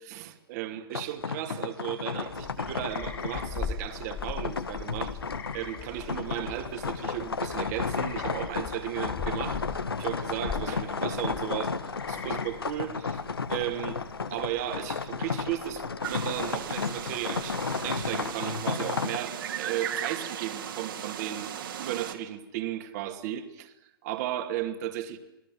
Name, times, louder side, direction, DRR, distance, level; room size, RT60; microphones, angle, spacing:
voice 1, 0.0-5.2 5.5-9.7 10.0-11.8 12.1-13.2 13.5-14.0 14.3-17.6 17.8-21.5 21.8-23.7 24.0-25.2, right 12 dB, 45° right, 2.5 m, -35 dB
sound 1, 0.9-19.2, left 5 dB, 85° left, 1.6 m, -33 dB
sound 2, 2.2-18.4, left 6 dB, 20° left, 2.7 m, -42 dB
sound 3, 16.0-22.1, right 9 dB, 65° right, 3.2 m, -37 dB
27.5 x 19.0 x 9.4 m
figure-of-eight pair, 115°, 12 cm